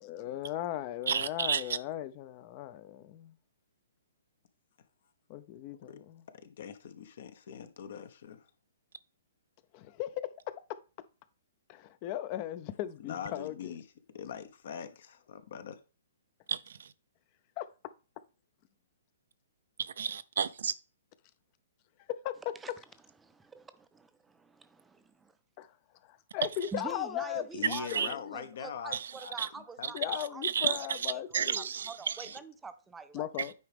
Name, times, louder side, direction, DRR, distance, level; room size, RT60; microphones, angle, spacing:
voice 1, 0.0-3.3 5.3-6.2 9.7-10.5 11.7-13.7 17.6-17.7 22.1-22.4 25.6-25.7 26.1-28.4 29.9-31.6 33.1-33.5, left 12 dB, 35° left, 0.7 m, -37 dB
voice 2, 1.1-1.8 16.5-16.9 19.8-20.7 27.6-28.1 28.9-29.1 29.4-29.5 30.4-32.3 33.4-33.5, right 7 dB, 65° right, 0.5 m, -32 dB
voice 3, 6.4-8.4 13.0-13.8 14.1-15.8 27.5-29.3 29.8-29.9, left 8 dB, 60° left, 1.1 m, -42 dB
voice 4, 23.2-25.3 26.7-30.8 31.1-33.3, right 5 dB, 10° right, 0.6 m, -46 dB
9.3 x 4.9 x 3.5 m
figure-of-eight pair, 125°, 0 cm